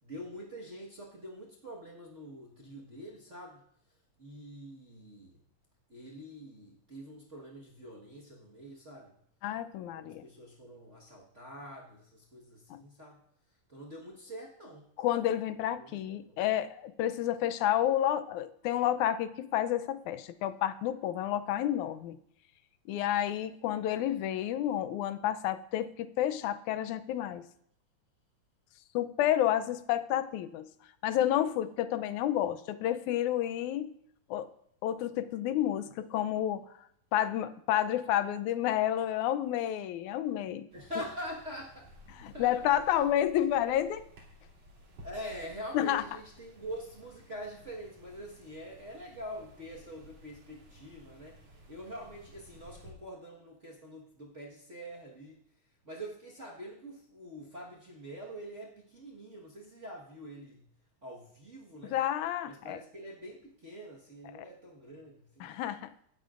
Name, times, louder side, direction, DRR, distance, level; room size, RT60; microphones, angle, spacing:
voice 1, 0.0-3.6 4.2-5.4 5.9-9.1 9.9-13.2 13.7-14.9 15.8-16.4 40.7-42.5 45.0-51.4 51.7-55.4 55.8-60.7 61.0-61.9 62.4-65.5, equal, 40° right, -4 dB, 1.1 m, -45 dB
voice 2, 9.4-10.2 12.7-12.8 15.0-22.2 22.9-27.4 28.9-30.7 31.0-34.0 34.3-34.5 34.8-36.6 37.1-40.7 42.2-44.0 45.7-46.0 61.9-62.8 65.4-65.9, left 11 dB, 85° left, 12 dB, 2.1 m, -30 dB
sound 1, 40.7-52.9, left 1 dB, 65° right, 4.1 m, -55 dB
17.5 x 13.0 x 2.5 m, 0.69 s
omnidirectional pair, 3.3 m